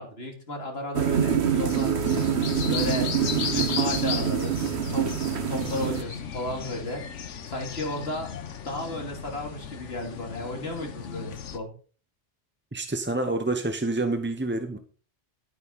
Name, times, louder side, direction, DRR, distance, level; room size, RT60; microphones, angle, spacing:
voice 1, 0.0-2.4 2.7-3.1 3.5-4.6 4.9-5.1 5.5-7.0 7.5-8.3 8.6-11.7, left 1 dB, 55° left, 1 dB, 3.0 m, -33 dB
sound 1, 0.9-6.0, right 7 dB, 65° right, 1.4 m, -25 dB
sound 2, 1.4-11.6, left 7 dB, 85° left, 1.3 m, -36 dB
voice 2, 12.7-14.8, right 2 dB, 10° right, 7 dB, 0.6 m, -28 dB
11.0 x 9.5 x 4.1 m, 0.40 s
omnidirectional pair, 1.2 m